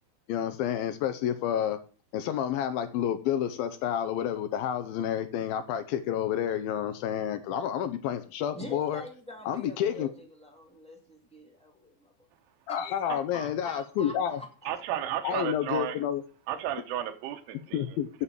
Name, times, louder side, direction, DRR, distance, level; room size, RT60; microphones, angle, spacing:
voice 1, 0.3-1.8 2.1-9.0 9.5-10.1 12.7-14.4 15.2-16.2 17.7-18.1, left 9 dB, 75° left, 11 dB, 2.4 m, -29 dB
voice 2, 8.5-12.1 12.7-14.5, left 1 dB, 10° left, 0 dB, 0.4 m, -44 dB
voice 3, 14.7-16.0 16.5-17.8, right 11 dB, 85° right, 5 dB, 3.0 m, -33 dB
8.6 x 7.1 x 6.9 m, 0.36 s
omnidirectional pair, 4.6 m